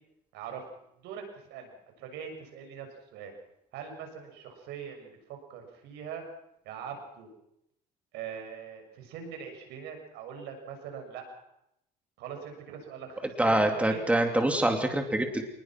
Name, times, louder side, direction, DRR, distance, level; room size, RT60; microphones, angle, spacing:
voice 1, 0.3-0.6 1.0-1.2 1.5-2.9 3.1-3.3 3.7-6.2 6.6-7.3 8.1-11.2 12.2-14.0, right 7 dB, 90° right, 4 dB, 6.7 m, -42 dB
voice 2, 13.4-15.4, right 1 dB, 10° right, 4 dB, 3.0 m, -25 dB
26.5 x 20.5 x 6.1 m, 0.78 s
cardioid pair, 110°, 17 cm